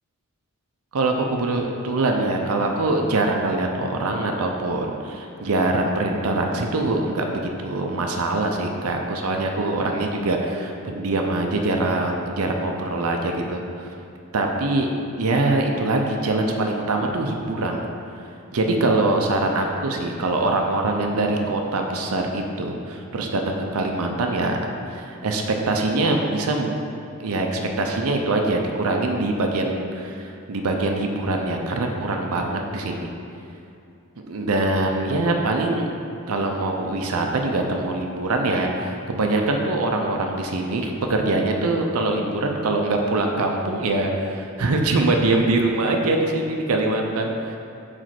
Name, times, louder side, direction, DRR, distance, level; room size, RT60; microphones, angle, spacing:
voice 1, 0.9-13.9 14.3-14.9 15.2-17.8 18.5-24.6 24.9-26.7 27.2-33.1 34.3-35.9 36.3-47.6, right 2 dB, 75° right, 2 dB, 0.6 m, -23 dB
5.1 x 4.3 x 5.8 m, 2.6 s
head